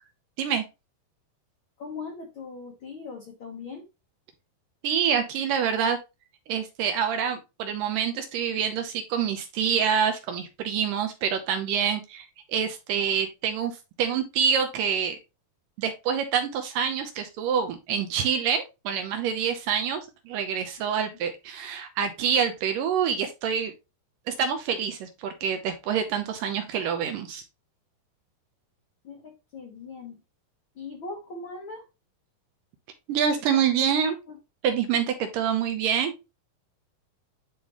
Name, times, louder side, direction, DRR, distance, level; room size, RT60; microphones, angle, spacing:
voice 1, 1.8-3.8 29.0-30.2 30.7-31.8 33.3-33.7 34.3-34.4, left 4 dB, 60° left, 0 dB, 1.3 m, -40 dB
voice 2, 4.8-6.0 6.5-13.7 14.0-15.2 15.8-23.7 24.3-27.4 33.1-34.2 34.6-36.1, right 7 dB, 75° right, 6 dB, 2.3 m, -26 dB
10.5 x 3.7 x 3.0 m, 0.25 s
omnidirectional pair, 4.3 m